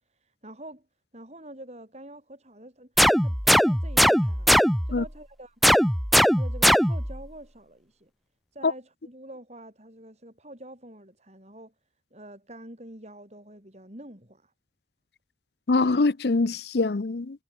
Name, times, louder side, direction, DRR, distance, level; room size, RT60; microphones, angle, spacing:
voice 1, 0.1-0.9 1.1-2.9 3.2-4.5 4.8-5.6 6.3-8.1 8.5-11.7 12.1-14.5, right 1 dB, 35° right, 6.7 m, -46 dB
sound 1, 3.0-5.0 5.6-7.2, equal, ahead, 0.4 m, -20 dB
voice 2, 15.7-17.4, left 3 dB, 60° left, 0.7 m, -24 dB
head